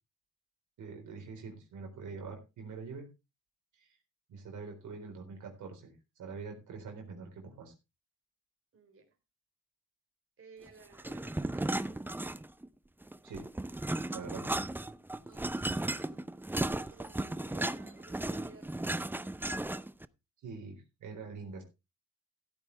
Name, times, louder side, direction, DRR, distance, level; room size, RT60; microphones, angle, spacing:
voice 1, 0.8-3.1 3.8-3.9 4.3-5.9 6.2-7.7 13.2-13.4 14.1-14.6 20.4-21.6, right 4 dB, 85° right, 2 dB, 4.1 m, -44 dB
voice 2, 8.7-9.1 10.4-12.4 15.2-16.3 16.6-19.3, right 5 dB, 45° right, 3 dB, 3.6 m, -57 dB
sound 1, 11.0-12.7 13.0-20.0, right 1 dB, 5° right, 0.6 m, -35 dB
15.0 x 9.1 x 3.3 m, 0.26 s
cardioid pair, 90°, 29 cm